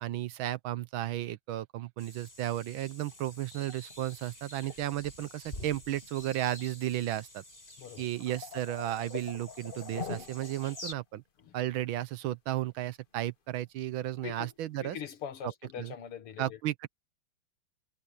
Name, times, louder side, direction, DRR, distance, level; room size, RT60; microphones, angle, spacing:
voice 1, 0.0-7.4 8.0-11.2 11.5-15.0 15.8-15.9 16.4-16.9, right 13 dB, 70° right, 1.5 m, -34 dB
sound 1, 2.0-10.9, left 1 dB, 25° left, 6.8 m, -49 dB
sound 2, 3.1-4.2 4.7-5.4 5.9-6.1 6.4-6.6 7.1-7.2 7.7-11.0 11.4-11.5 13.7-13.8 14.1-14.3 14.8-15.0, left 5 dB, 50° left, 0.6 m, -44 dB
voice 2, 14.8-16.6, left 8 dB, 85° left, 2.4 m, -42 dB
omnidirectional pair, 2.4 m